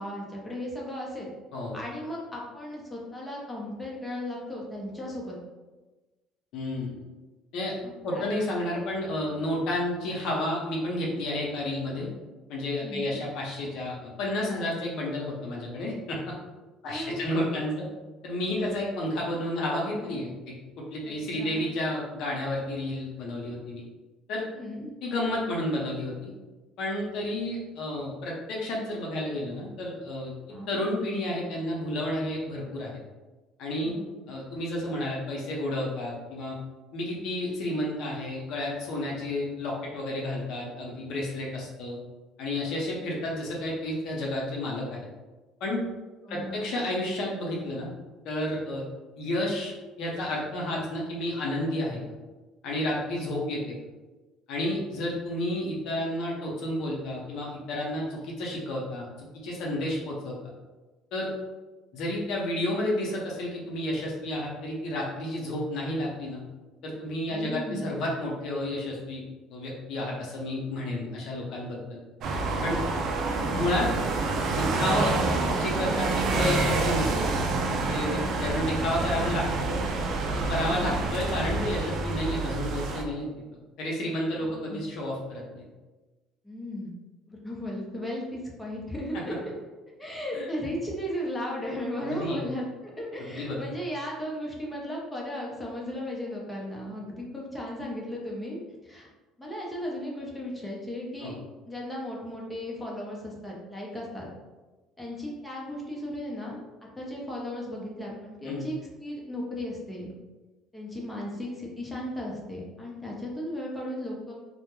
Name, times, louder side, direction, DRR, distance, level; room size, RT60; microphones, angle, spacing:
voice 1, 0.0-1.3 1.7-5.4 7.8-8.3 12.8-13.2 16.8-17.3 18.6-18.7 21.1-21.6 24.5-24.9 30.5-30.7 33.8-34.1 46.2-46.6 67.3-67.9 80.6-81.0 84.4-84.8 86.4-86.9 87.3-89.4 90.0-99.1 99.4-101.3 101.7-104.3 105.0-106.6 107.0-110.1 110.7-114.3, left 1 dB, 10° left, -4 dB, 0.7 m, -36 dB
voice 2, 6.5-7.0 7.5-7.7 8.0-12.1 12.5-16.3 16.8-17.7 18.2-23.8 24.3-24.5 25.0-26.3 26.8-30.3 30.7-32.9 33.6-33.9 34.3-36.6 36.9-42.0 42.4-45.0 45.6-45.8 46.3-47.9 48.2-48.8 49.2-52.0 52.6-53.8 54.5-60.4 61.1-61.3 61.9-66.4 66.8-69.2 69.5-72.0 72.6-72.8 73.5-73.9 74.5-75.1 75.5-77.5 77.8-79.8 80.3-83.3 83.8-85.6 90.3-90.5 92.0-92.4 93.2-93.7 101.2-101.3 108.5-108.6, left 1 dB, 70° left, -3 dB, 0.6 m, -31 dB
sound 1, 72.2-83.0, right 3 dB, 60° right, 0.3 m, -27 dB
2.1 x 2.1 x 3.0 m, 1.2 s
supercardioid pair, 90°, 0 cm